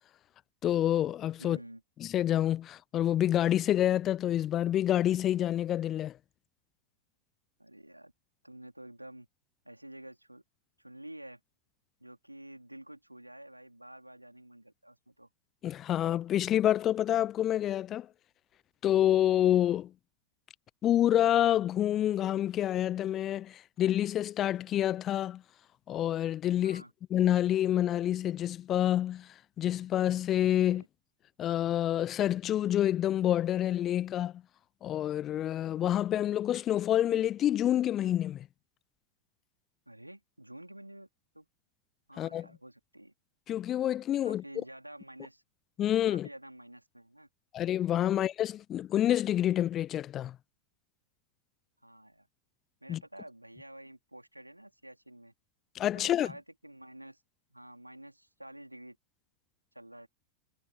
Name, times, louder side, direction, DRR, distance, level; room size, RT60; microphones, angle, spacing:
voice 1, 0.6-1.6 2.0-6.2 15.6-18.1 18.8-19.9 20.8-25.4 25.9-26.8 27.1-29.3 29.6-30.8 31.4-34.3 34.8-38.5 42.2-42.5 43.5-44.4 45.8-46.3 47.5-50.4 52.9-53.0 55.7-56.3, left 11 dB, 30° left, 0.8 m, -28 dB
voice 2, 1.4-1.8 7.6-8.1 8.4-9.3 9.6-10.4 10.8-11.4 12.0-15.3 26.6-26.9 30.6-30.9 39.9-41.1 41.3-41.5 42.1-43.1 44.2-45.4 46.1-47.3 51.8-52.3 52.8-55.3 55.9-57.2 57.5-59.0 59.7-60.1, right 1 dB, 85° right, 4.2 m, -49 dB
figure-of-eight pair, 90°, 0 cm